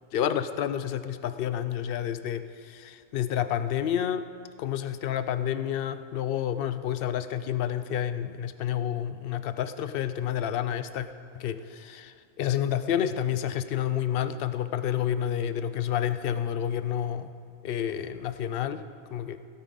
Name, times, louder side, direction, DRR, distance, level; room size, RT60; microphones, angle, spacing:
voice 1, 0.1-4.3 4.6-11.1 11.3-17.3 17.6-18.9 19.1-19.4, left 10 dB, 60° left, 11 dB, 0.6 m, -29 dB
16.5 x 13.0 x 3.9 m, 2.4 s
omnidirectional pair, 1.4 m